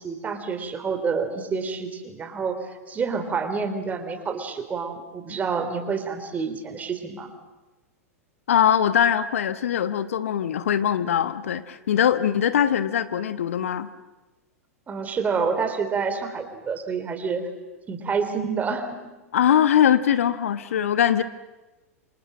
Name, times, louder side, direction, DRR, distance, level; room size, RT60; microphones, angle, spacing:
voice 1, 0.0-7.3 14.9-17.4 17.9-18.9, right 5 dB, 20° right, 8 dB, 3.5 m, -28 dB
voice 2, 8.5-13.9 19.3-21.2, left 9 dB, 60° left, 13 dB, 1.1 m, -21 dB
28.0 x 26.0 x 7.5 m, 1.1 s
figure-of-eight pair, 95°, 8 cm